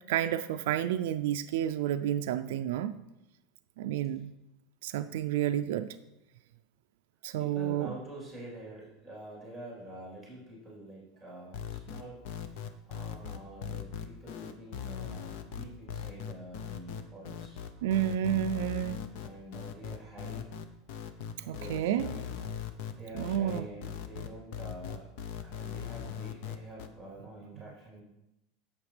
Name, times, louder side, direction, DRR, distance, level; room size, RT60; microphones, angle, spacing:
voice 1, 0.1-3.0 3.8-4.3 4.8-5.9 7.2-7.9 17.8-19.0 21.5-22.1 23.1-23.6, right 11 dB, 70° right, 10 dB, 0.3 m, -30 dB
voice 2, 7.4-12.2 12.8-17.6 19.1-20.5 21.4-22.3 23.0-25.1 25.4-28.0, right 1 dB, 10° left, -6 dB, 3.5 m, -47 dB
sound 1, 11.5-26.9, left 8 dB, 50° left, 0.7 m, -39 dB
10.5 x 7.1 x 3.4 m, 0.90 s
supercardioid pair, 175°, 0 cm